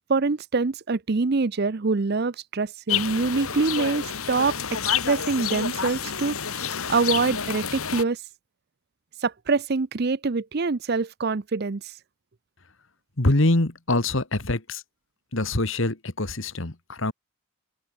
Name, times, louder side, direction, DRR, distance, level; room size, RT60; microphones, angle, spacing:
voice 1, 0.1-4.8 5.0-8.2 9.2-11.8, right 4 dB, 45° right, 0.6 m, -25 dB
sound 1, 2.9-8.0, left 8 dB, 75° left, 2.3 m, -29 dB
voice 2, 13.2-14.8 15.3-17.1, left 2 dB, 60° left, 1.8 m, -24 dB
open air
head